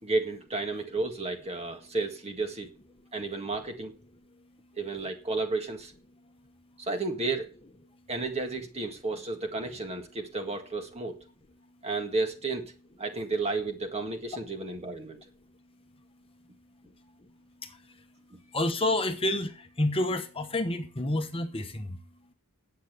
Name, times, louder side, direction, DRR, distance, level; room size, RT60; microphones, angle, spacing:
voice 1, 0.0-2.7 3.1-3.9 4.8-5.9 6.8-7.5 8.1-11.1 11.8-12.6 13.0-15.2, right 3 dB, 30° right, 1.8 m, -32 dB
voice 2, 17.6-18.0 18.5-22.0, left 1 dB, 25° left, 1.1 m, -29 dB
10.0 x 8.1 x 6.7 m
head